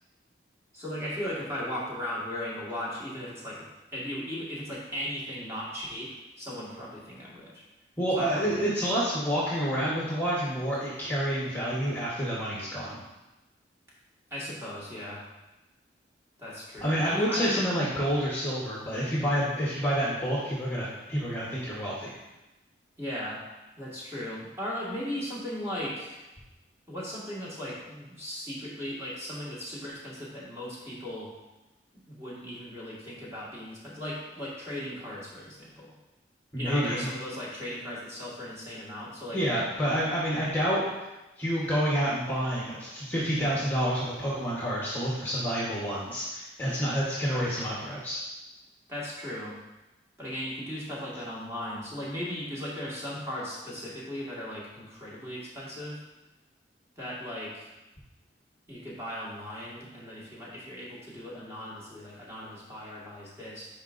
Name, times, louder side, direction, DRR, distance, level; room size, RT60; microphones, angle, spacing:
voice 1, 0.7-3.6 3.9-7.6 8.2-8.6 14.3-15.2 16.4-17.6 23.0-23.4 23.8-26.3 26.9-31.3 32.1-35.9 36.6-39.4 48.9-49.6 50.2-56.0 57.0-57.7 58.7-63.7, equal, 15° right, -7 dB, 1.7 m, -37 dB
voice 2, 8.0-12.9 16.8-22.1 36.5-37.1 39.3-41.1 41.4-48.2, equal, 10° left, -7 dB, 1.1 m, -28 dB
9.8 x 4.9 x 2.5 m, 1.0 s
head